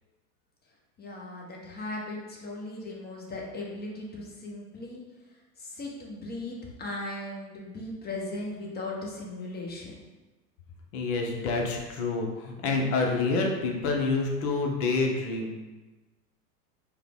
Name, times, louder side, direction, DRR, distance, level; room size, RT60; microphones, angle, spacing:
voice 1, 1.0-5.0 5.6-10.0, left 2 dB, 20° left, -2 dB, 0.9 m, -37 dB
voice 2, 10.9-15.6, left 3 dB, 55° left, 1 dB, 0.8 m, -28 dB
4.8 x 2.3 x 3.5 m, 1.2 s
hypercardioid pair, 85°, 47 cm